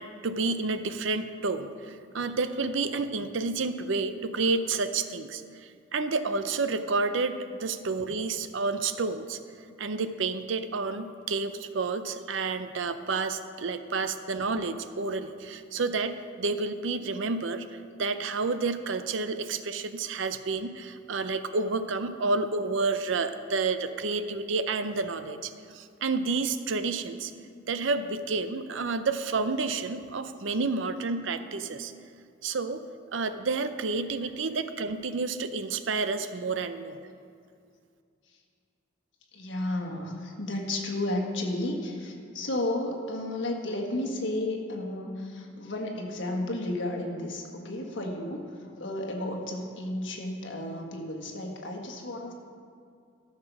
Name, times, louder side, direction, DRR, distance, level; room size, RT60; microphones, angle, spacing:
voice 1, 0.0-9.4 9.8-27.3 27.7-31.9 32.4-32.8 33.1-37.0, right 3 dB, 70° right, 10 dB, 0.6 m, -30 dB
voice 2, 39.3-52.3, left 1 dB, 65° left, 1 dB, 1.6 m, -33 dB
13.0 x 6.7 x 6.0 m, 2.3 s
head